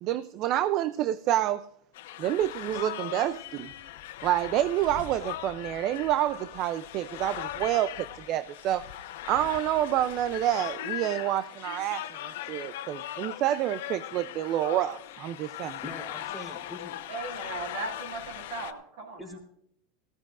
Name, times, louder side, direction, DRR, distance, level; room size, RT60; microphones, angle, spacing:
voice 1, 0.0-1.7 2.2-3.7 4.2-8.8 9.3-15.8, right 12 dB, 45° right, 0.5 m, -28 dB
sound 1, 1.9-18.7, left 13 dB, 75° left, 1.1 m, -39 dB
voice 2, 15.8-17.0 19.2-19.4, left 1 dB, 5° right, 4.0 m, -42 dB
voice 3, 17.1-19.4, right 3 dB, 65° right, 6.1 m, -38 dB
18.5 x 16.0 x 2.5 m
supercardioid pair, 140°, 0 cm